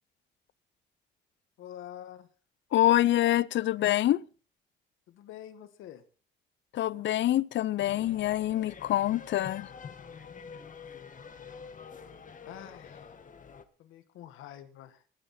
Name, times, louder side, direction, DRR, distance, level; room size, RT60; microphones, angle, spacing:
voice 1, 1.6-2.3 5.1-6.0 12.5-13.1 13.8-15.0, left 11 dB, 90° left, 1.6 m, -46 dB
voice 2, 2.7-4.2 6.7-9.7, left 13 dB, 65° left, 0.6 m, -26 dB
sound 1, 7.8-13.7, left 6 dB, 40° left, 1.6 m, -47 dB
20.0 x 9.5 x 4.3 m
cardioid pair, 90°, 20 cm